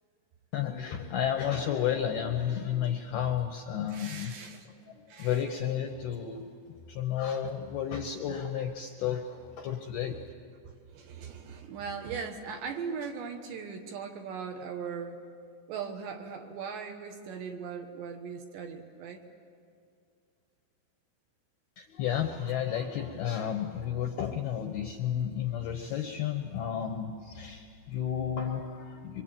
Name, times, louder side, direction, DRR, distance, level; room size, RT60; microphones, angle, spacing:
voice 1, 0.5-4.5 4.9-6.4 6.9-10.2 21.8-29.2, left 9 dB, 75° left, 4 dB, 2.3 m, -32 dB
voice 2, 3.9-4.7 5.1-5.4 10.9-15.2 15.7-19.2, right 6 dB, 70° right, 4 dB, 3.1 m, -39 dB
25.0 x 24.5 x 9.0 m, 2.4 s
omnidirectional pair, 6.0 m